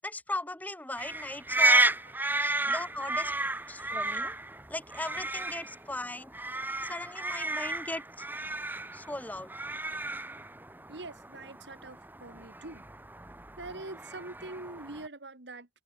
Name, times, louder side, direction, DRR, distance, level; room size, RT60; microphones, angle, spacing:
voice 1, 0.0-1.9 2.4-3.3 3.7-4.4 4.7-6.3 6.8-8.3 8.9-9.5, left 1 dB, 10° left, 4.9 m, -38 dB
sound 1, 1.0-15.1, right 2 dB, 10° right, 2.2 m, -32 dB
voice 2, 10.9-12.8 13.6-15.7, right 2 dB, 80° right, 2.3 m, -44 dB
head